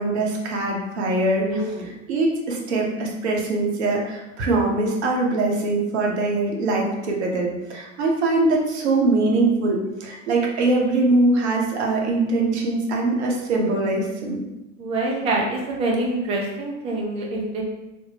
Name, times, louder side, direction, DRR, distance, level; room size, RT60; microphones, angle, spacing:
voice 1, 0.0-14.4, right 2 dB, 60° right, -1 dB, 0.8 m, -22 dB
voice 2, 1.4-1.9 14.8-17.6, right 2 dB, 15° right, -1 dB, 0.3 m, -25 dB
3.4 x 2.0 x 2.8 m, 1.0 s
figure-of-eight pair, 90°, 38 cm